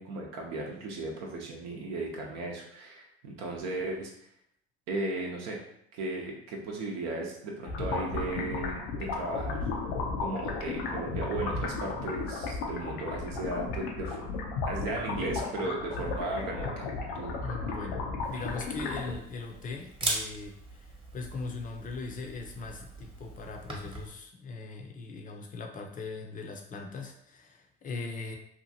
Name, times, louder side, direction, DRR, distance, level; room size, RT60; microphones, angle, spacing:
voice 1, 0.0-4.1 4.9-5.6 5.9-9.6 10.2-14.2 14.7-16.9 17.1-17.3, right 2 dB, 65° right, -1 dB, 0.7 m, -36 dB
sound 1, 7.6-19.2, left 3 dB, 80° left, 0.6 m, -34 dB
voice 2, 17.4-18.0 18.3-28.4, left 4 dB, 30° left, 3 dB, 0.6 m, -40 dB
Camera, 18.2-24.1, right 2 dB, 20° right, 0.9 m, -39 dB
2.8 x 2.4 x 2.7 m, 0.71 s
hypercardioid pair, 70°, 29 cm